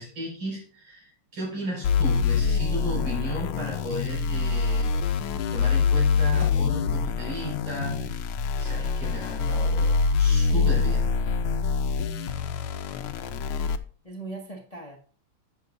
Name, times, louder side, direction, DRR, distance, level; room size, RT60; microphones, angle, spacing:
voice 1, 0.0-5.1 5.5-8.1 8.5-9.9 10.2-11.1, equal, 70° right, -3 dB, 6.0 m, -34 dB
sound 1, 1.8-13.8, left 5 dB, 85° left, 1.6 m, -25 dB
voice 2, 12.0-12.6 13.1-13.4 14.0-15.0, right 2 dB, 25° left, 1 dB, 1.0 m, -41 dB
11.5 x 8.1 x 2.6 m, 0.43 s
omnidirectional pair, 2.3 m